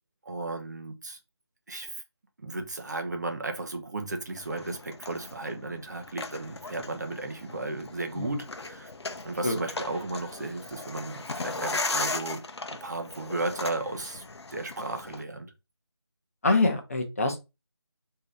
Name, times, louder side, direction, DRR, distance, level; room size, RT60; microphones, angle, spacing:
voice 1, 0.3-1.2 1.7-2.0 2.4-8.9 9.2-12.4 12.7-14.2 14.5-15.5, right 2 dB, 40° right, 0.6 m, -34 dB
sound 1, 4.4-15.2, left 3 dB, 65° left, 0.6 m, -37 dB
voice 2, 16.4-17.4, left 3 dB, 30° left, 0.7 m, -25 dB
3.5 x 2.8 x 3.2 m
figure-of-eight pair, 165°, 15 cm